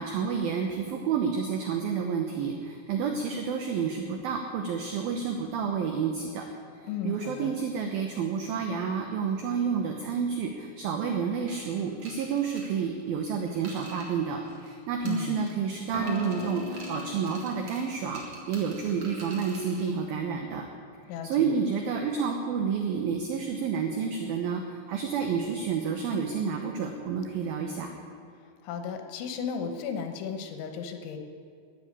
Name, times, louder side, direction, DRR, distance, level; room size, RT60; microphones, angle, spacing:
voice 1, 0.0-6.5 6.8-20.7 21.2-27.9, right 6 dB, 70° right, 4 dB, 2.3 m, -30 dB
voice 2, 6.8-7.5 15.0-15.4 21.1-21.5 28.6-31.2, left 7 dB, 80° left, 6 dB, 3.6 m, -35 dB
sound 1, 11.5-14.8 15.0-15.7 16.1-19.9, right 2 dB, 35° right, 2.5 m, -48 dB
sound 2, 15.9-19.7, left 3 dB, 15° left, 1.6 m, -40 dB
12.5 x 10.5 x 9.6 m, 2.3 s
omnidirectional pair, 5.3 m